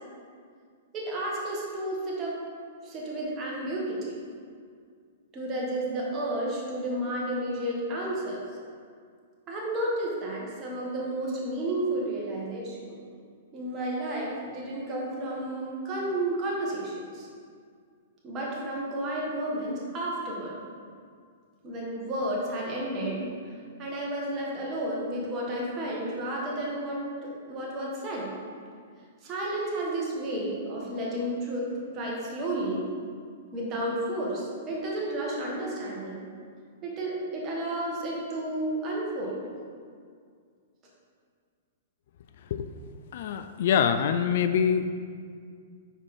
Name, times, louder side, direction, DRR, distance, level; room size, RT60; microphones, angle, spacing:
voice 1, 0.9-2.4 2.8-4.2 5.3-8.4 9.5-13.0 13.5-17.3 18.2-20.6 21.6-23.2 23.8-28.3 29.2-32.9 33.5-36.2 36.8-39.4, right 1 dB, 30° right, -4 dB, 1.7 m, -32 dB
voice 2, 43.1-44.8, left 8 dB, 60° left, 10 dB, 0.3 m, -24 dB
5.9 x 4.5 x 4.4 m, 2.1 s
hypercardioid pair, 115°, 0 cm